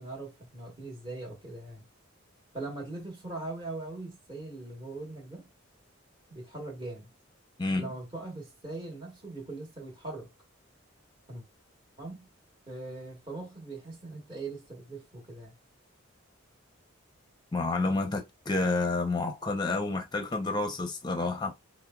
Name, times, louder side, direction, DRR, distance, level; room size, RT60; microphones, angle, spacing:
voice 1, 0.0-1.8 2.5-5.4 6.3-7.1 7.7-10.3 11.3-11.4 12.0-12.3 12.7-15.6, right 2 dB, 25° right, 1.1 m, -41 dB
voice 2, 7.6-7.9 17.5-21.5, left 3 dB, 20° left, 0.6 m, -29 dB
4.5 x 2.1 x 2.3 m
head